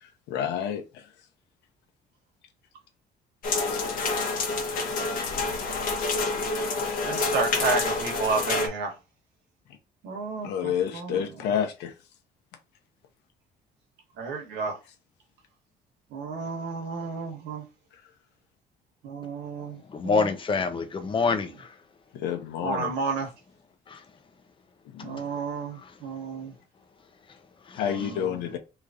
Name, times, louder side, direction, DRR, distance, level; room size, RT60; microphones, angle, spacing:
voice 1, 0.0-1.1 10.4-11.9 22.1-23.0 24.9-25.2 27.7-28.6, left 8 dB, 90° left, 0.8 m, -29 dB
sound 1, 3.4-8.7, left 3 dB, 55° left, 0.9 m, -28 dB
voice 2, 7.0-8.9 10.0-11.1 14.2-14.8 16.1-17.6 19.0-20.3 22.6-23.3 25.0-26.5, right 4 dB, 85° right, 1.2 m, -31 dB
voice 3, 19.9-21.7 23.9-24.0 27.7-27.8, left 4 dB, 30° left, 0.7 m, -26 dB
3.1 x 2.6 x 3.6 m
cardioid pair, 110°, 17 cm